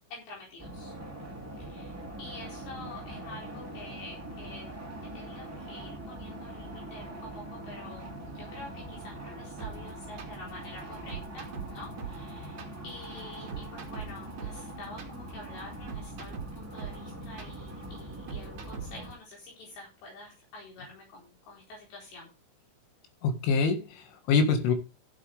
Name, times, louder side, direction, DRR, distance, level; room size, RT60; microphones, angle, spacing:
voice 1, 0.1-1.0 1.6-4.7 5.0-22.3, left 2 dB, 65° left, -2 dB, 6.3 m, -47 dB
sound 1, 0.6-19.1, right 1 dB, 10° right, 0.6 m, -42 dB
sound 2, 9.6-19.1, right 7 dB, 45° right, 3.3 m, -41 dB
voice 2, 23.2-24.7, left 4 dB, 85° left, 6 dB, 4.3 m, -25 dB
15.5 x 7.5 x 3.5 m, 0.29 s
omnidirectional pair, 5.4 m